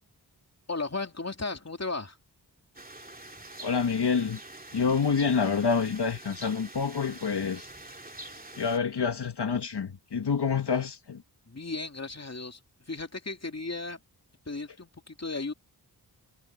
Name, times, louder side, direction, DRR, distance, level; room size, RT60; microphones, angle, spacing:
voice 1, 0.7-2.2 11.5-12.6 12.9-14.0 14.5-15.5, left 3 dB, 40° left, 3.0 m, -35 dB
sound 1, 2.7-8.8, right 2 dB, 20° right, 2.8 m, -45 dB
voice 2, 3.6-4.4 4.7-7.7 8.6-11.2, left 5 dB, 70° left, 1.8 m, -27 dB
cardioid pair, 45°, 41 cm